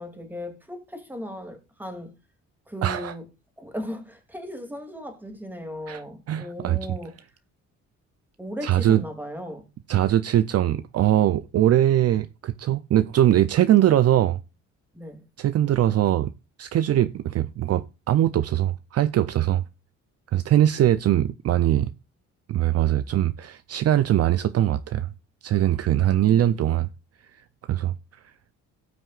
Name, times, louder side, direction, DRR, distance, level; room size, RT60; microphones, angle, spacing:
voice 1, 0.0-2.2 2.7-3.3 3.6-7.1 8.4-9.7 14.9-15.2 26.0-26.7, equal, 5° right, 2.6 m, -37 dB
voice 2, 2.8-3.1 5.9-6.0 6.3-6.8 8.6-9.0 9.9-14.4 15.4-16.3 16.6-19.6 20.3-21.9 22.5-25.1 25.4-26.9 27.7-27.9, right 12 dB, 55° right, 0.5 m, -21 dB
17.5 x 6.2 x 2.4 m
cardioid pair, 90°, 30 cm